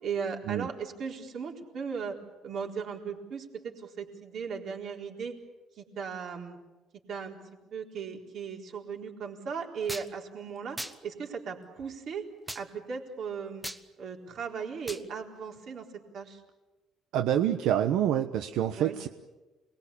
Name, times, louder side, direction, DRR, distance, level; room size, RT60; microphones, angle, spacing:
voice 1, 0.0-2.2 2.4-5.3 5.8-6.6 7.1-7.4 7.7-10.8 11.0-12.2 12.5-13.7 14.0-15.9 16.1-16.4 18.8-19.0, right 6 dB, 50° right, 1 dB, 4.3 m, -37 dB
sound 1, 9.9-10.1 10.8-11.0 12.5-12.6 13.6-13.8 14.9-15.0, equal, 5° right, 1.1 m, -37 dB
voice 2, 17.1-19.1, right 10 dB, 80° right, 7 dB, 1.1 m, -27 dB
28.5 x 21.0 x 8.6 m, 1.1 s
cardioid pair, 155°, 0 cm